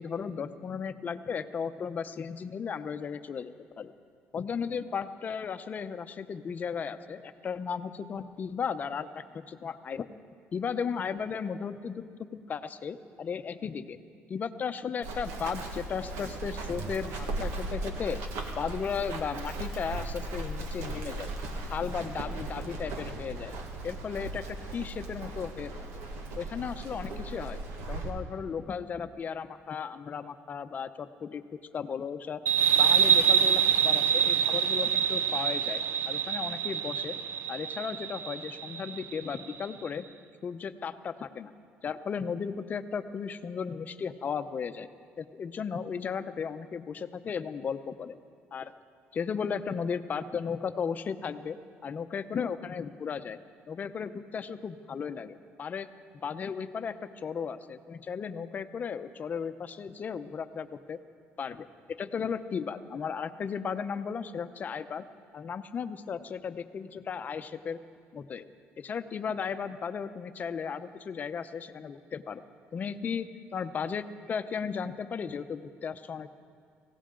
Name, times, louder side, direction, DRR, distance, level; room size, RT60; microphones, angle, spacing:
voice 1, 0.0-3.9 4.3-10.1 10.5-14.0 14.3-18.2 18.6-21.3 21.7-23.6 23.8-25.7 26.4-27.6 27.9-31.4 31.7-32.4 32.8-37.2 37.5-40.1 40.4-41.5 41.8-44.9 45.2-48.2 48.5-48.7 49.1-51.6 51.8-53.4 53.7-55.9 56.1-61.0 61.4-65.0 65.3-67.8 68.1-72.4 72.7-76.3, left 6 dB, 40° left, 11 dB, 0.7 m, -35 dB
Run, 15.0-28.1, right 2 dB, 90° right, 1.7 m, -37 dB
sound 1, 32.5-39.7, right 7 dB, 60° right, 0.6 m, -26 dB
23.0 x 16.5 x 3.8 m, 2.1 s
cardioid pair, 115°, 4 cm